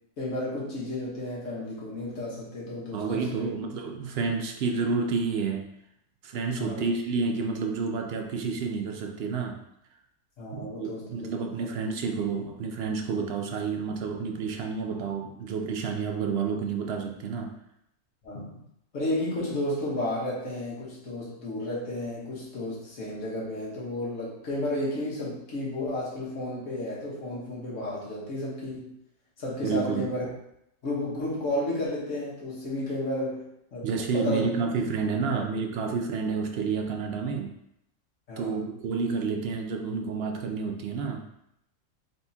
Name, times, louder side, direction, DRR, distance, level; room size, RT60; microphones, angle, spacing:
voice 1, 0.2-3.5 6.6-6.8 10.4-11.7 18.2-18.6 18.9-28.9 29.4-30.3 30.8-33.9 34.1-34.5 35.3-35.4 38.3-38.7, left 1 dB, 65° left, -6 dB, 1.5 m, -32 dB
voice 2, 2.9-5.7 6.2-9.6 10.5-17.6 29.6-30.1 33.8-37.5 38.4-41.3, right 5 dB, 65° right, 3 dB, 0.6 m, -30 dB
4.2 x 3.5 x 2.8 m, 0.78 s
omnidirectional pair, 1.5 m